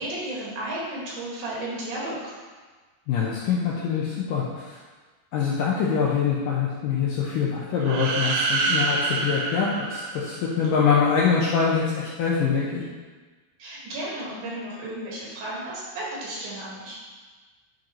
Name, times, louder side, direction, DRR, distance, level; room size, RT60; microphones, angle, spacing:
voice 1, 0.0-2.3 13.6-17.0, right 1 dB, 65° right, -6 dB, 3.3 m, -33 dB
voice 2, 3.1-4.8 5.3-12.8, left 6 dB, 75° left, -5 dB, 2.1 m, -24 dB
sound 1, 7.8-10.7, right 3 dB, 80° right, 2.6 m, -27 dB
11.0 x 5.2 x 3.0 m, 1.4 s
omnidirectional pair, 4.7 m